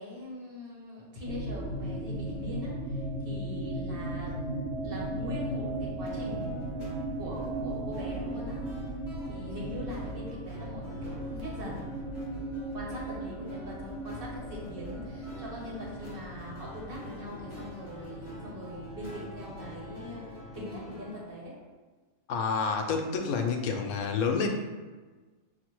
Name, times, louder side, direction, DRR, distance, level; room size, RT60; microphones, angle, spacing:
voice 1, 0.0-4.5 4.8-6.6 7.2-8.6 9.3-11.8 12.7-21.5, left 1 dB, 45° right, -4 dB, 1.1 m, -42 dB
sound 1, 1.2-21.1, right 1 dB, 65° right, 0.9 m, -37 dB
sound 2, 6.0-21.3, left 2 dB, 25° left, 1.3 m, -48 dB
voice 2, 22.3-24.5, left 5 dB, 80° left, 3 dB, 1.0 m, -28 dB
6.2 x 2.1 x 3.0 m, 1.3 s
omnidirectional pair, 1.5 m